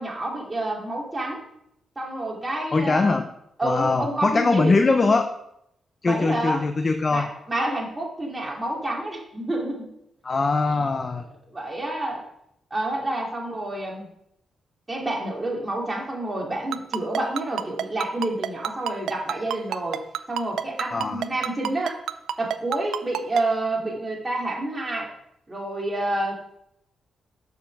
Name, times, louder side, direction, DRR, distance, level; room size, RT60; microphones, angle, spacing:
voice 1, 0.0-1.4 2.0-3.1 3.6-5.1 6.0-6.6 7.1-9.9 11.5-12.2 12.7-14.1 14.9-20.0 20.3-22.0 22.4-25.1 25.5-26.5, right 1 dB, 20° right, -2 dB, 2.6 m, -28 dB
voice 2, 2.7-3.3 3.6-5.3 6.0-7.3 10.2-11.2 20.9-21.2, left 3 dB, 35° left, 7 dB, 0.7 m, -22 dB
Ringtone, 16.7-23.4, right 10 dB, 85° right, 0.4 m, -27 dB
7.0 x 5.4 x 6.6 m, 0.77 s
cardioid pair, 80°, 0 cm